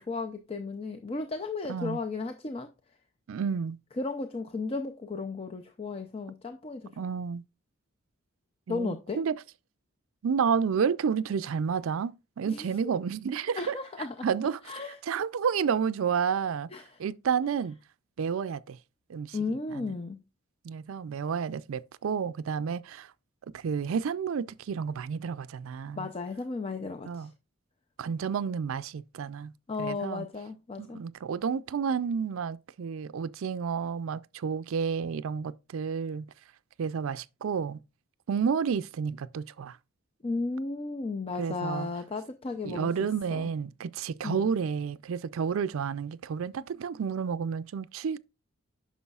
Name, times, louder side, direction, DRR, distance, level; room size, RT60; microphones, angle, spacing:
voice 1, 0.0-2.7 4.0-6.9 8.7-9.2 12.5-12.9 13.6-14.1 14.7-15.0 16.7-16.9 19.3-20.2 26.0-27.3 29.7-31.0 40.2-42.9 43.3-43.5 44.2-44.4, left 3 dB, 25° left, 0.5 m, -34 dB
voice 2, 1.7-2.0 3.3-3.8 7.0-7.4 8.7-9.3 10.2-13.8 14.2-14.7 15.0-16.7 17.0-17.8 18.2-18.8 19.1-19.9 20.6-23.1 23.5-26.1 27.1-27.3 28.0-29.5 29.8-30.3 30.8-36.3 36.8-37.8 38.3-39.8 41.4-41.9 42.6-48.2, right 6 dB, 70° right, 0.4 m, -30 dB
9.4 x 6.1 x 2.3 m
head